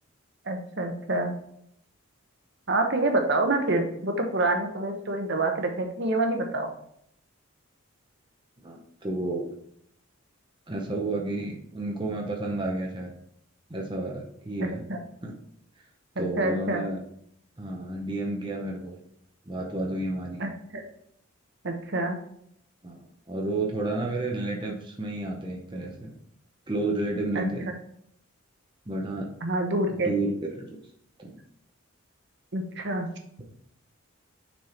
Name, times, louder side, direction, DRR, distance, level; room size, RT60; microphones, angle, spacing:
voice 1, 0.4-1.3 2.7-6.7 14.6-15.0 16.2-16.8 20.4-20.8 21.6-22.2 27.3-27.4 29.4-30.1 32.5-33.1, right 2 dB, 50° right, 4 dB, 0.9 m, -27 dB
voice 2, 8.6-9.5 10.7-13.1 13.7-14.8 15.2-15.3 16.2-17.0 17.6-19.0 19.5-20.4 22.8-23.0 23.3-26.1 26.7-27.7 28.9-29.3 29.9-30.6 31.2-31.3, right 2 dB, 20° right, -1 dB, 0.8 m, -31 dB
6.3 x 4.4 x 4.4 m, 0.69 s
head